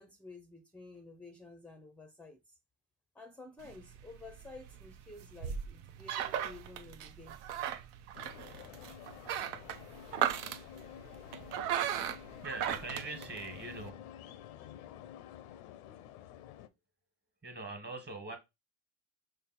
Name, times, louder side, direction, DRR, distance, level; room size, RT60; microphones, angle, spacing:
voice 1, 0.0-2.6 3.1-7.4, left 3 dB, 5° left, 0.5 m, -52 dB
sound 1, 3.6-13.9, right 10 dB, 75° right, 0.6 m, -38 dB
sound 2, 8.1-16.7, left 11 dB, 85° left, 0.6 m, -50 dB
voice 2, 12.4-14.1 17.4-18.4, right 3 dB, 25° right, 1.4 m, -42 dB
5.2 x 2.0 x 4.0 m
hypercardioid pair, 80°, 42 cm